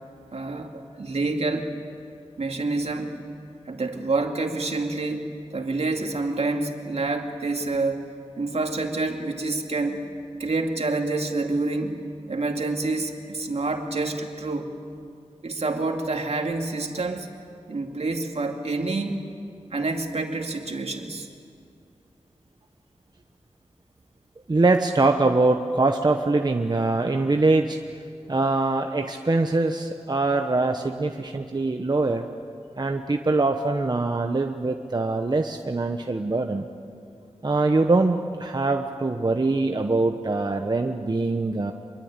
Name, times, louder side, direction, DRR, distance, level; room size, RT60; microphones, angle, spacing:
voice 1, 0.3-1.7 2.4-3.2 3.7-8.1 8.4-10.1 10.4-12.0 12.3-14.7 15.4-17.3 17.7-19.2 19.7-21.3, right 3 dB, 65° right, 3 dB, 2.4 m, -27 dB
voice 2, 24.5-27.8 28.3-32.2 32.8-36.7 37.4-41.7, right 3 dB, 35° right, 4 dB, 1.1 m, -23 dB
25.5 x 22.5 x 9.0 m, 2.4 s
wide cardioid pair, 75°, 12 cm